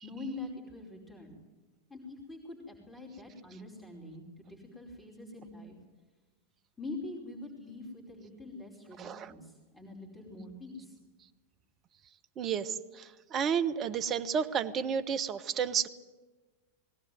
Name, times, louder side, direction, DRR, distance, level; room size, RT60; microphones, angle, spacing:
voice 1, 0.0-1.4 1.9-5.8 6.8-11.0, left 2 dB, 5° left, -2 dB, 4.9 m, -44 dB
voice 2, 9.0-9.3 12.4-15.9, right 7 dB, 30° right, 10 dB, 1.1 m, -31 dB
20.5 x 18.0 x 9.4 m, 1.2 s
figure-of-eight pair, 90°, 0 cm